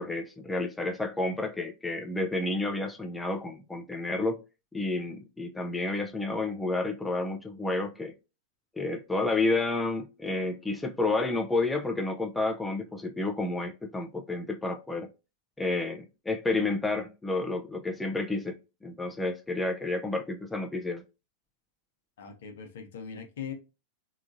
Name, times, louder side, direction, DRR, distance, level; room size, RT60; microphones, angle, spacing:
voice 1, 0.0-4.4 4.7-8.1 8.8-15.1 15.6-21.0, left 2 dB, 10° left, 0.4 m, -30 dB
voice 2, 22.2-23.5, left 7 dB, 70° left, 0.8 m, -40 dB
2.9 x 2.4 x 2.5 m
hypercardioid pair, 110°, 0 cm